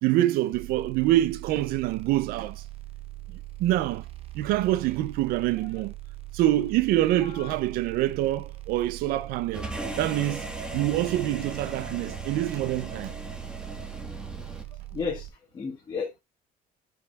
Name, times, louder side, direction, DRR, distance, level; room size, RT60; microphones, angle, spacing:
voice 1, 0.0-2.7 3.3-4.1 4.3-5.9 6.3-9.7 10.0-13.1, right 14 dB, 85° right, 0.4 m, -26 dB
sound 1, 0.5-15.3, right 15 dB, 40° right, 0.8 m, -41 dB
voice 2, 7.2-7.5 14.9-15.3 15.5-16.2, left 5 dB, 25° left, 1.3 m, -33 dB
sound 2, 9.5-14.6, right 2 dB, 5° right, 1.2 m, -37 dB
10.5 x 4.7 x 2.2 m
cardioid pair, 150°, 15 cm